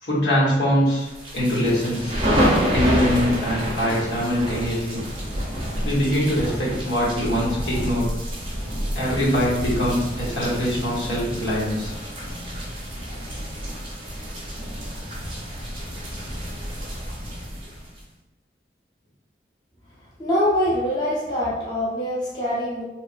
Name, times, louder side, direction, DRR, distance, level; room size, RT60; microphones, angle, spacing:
voice 1, 0.0-1.1 1.3-2.1 2.7-5.0 5.8-8.1 9.0-11.9, equal, 75° left, -6 dB, 0.9 m, -23 dB
sound 1, 1.1-18.0, equal, 30° right, 0.6 m, -28 dB
voice 2, 20.2-22.8, equal, 25° left, -9 dB, 0.7 m, -24 dB
3.0 x 2.0 x 2.5 m, 0.98 s
head